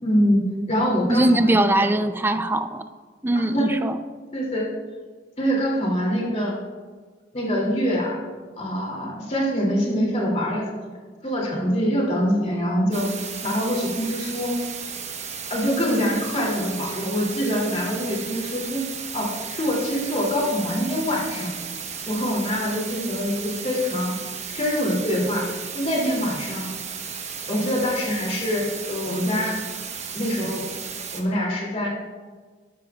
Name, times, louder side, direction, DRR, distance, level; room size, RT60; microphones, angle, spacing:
voice 1, 0.0-1.9 3.3-3.7 4.3-4.7 5.4-6.5 7.3-8.2 8.6-10.7 11.2-13.1 13.4-14.6 15.5-18.8 19.1-21.6 22.1-24.1 24.5-25.4 25.7-26.7 27.5-29.6 30.1-30.6 31.1-31.9, equal, 35° left, -3 dB, 2.6 m, -24 dB
voice 2, 1.1-2.8 3.2-4.0, right 1 dB, 10° right, 10 dB, 0.4 m, -21 dB
sound 1, 12.9-31.2, right 6 dB, 35° right, 1.0 m, -34 dB
12.5 x 11.5 x 2.3 m, 1.5 s
head